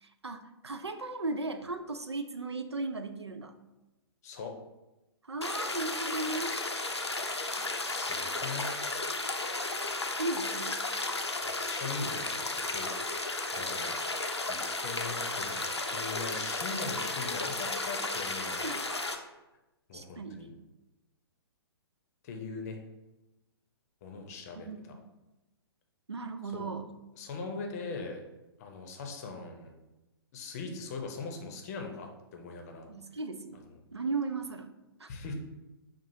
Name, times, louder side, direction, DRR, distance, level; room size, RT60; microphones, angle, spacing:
voice 1, 0.0-3.5 5.2-6.5 10.2-10.7 18.6-18.8 19.9-20.4 24.7-24.8 26.1-26.9 32.9-33.6 33.9-34.7 35.0-35.1, right 3 dB, 85° right, 8 dB, 0.4 m, -36 dB
sound 1, 5.4-19.2, left 2 dB, 90° left, 0.5 m, -34 dB
voice 2, 7.8-8.7 11.4-13.2 13.5-13.9 14.5-18.7 19.9-20.5 22.2-22.8 24.0-25.0 26.5-26.8 27.2-28.2 28.6-29.7 30.3-32.9 33.5-33.8 35.1-35.3, left 4 dB, 35° left, 3 dB, 0.7 m, -41 dB
5.9 x 2.4 x 2.7 m, 1.0 s
figure-of-eight pair, 115°, 14 cm